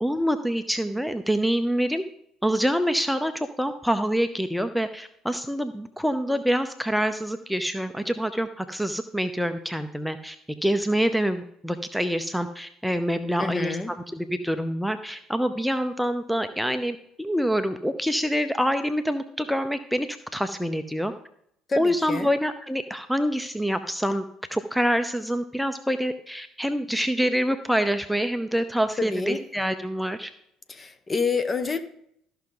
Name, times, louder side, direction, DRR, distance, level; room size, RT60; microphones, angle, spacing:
voice 1, 0.0-2.0 2.4-10.4 10.6-21.1 21.8-24.2 24.5-30.3, equal, ahead, 0.6 m, -26 dB
voice 2, 13.4-13.9 21.7-22.3 29.0-29.4 30.7-31.8, left 4 dB, 30° left, 1.0 m, -28 dB
13.5 x 5.8 x 3.9 m
hypercardioid pair, 60°, 0 cm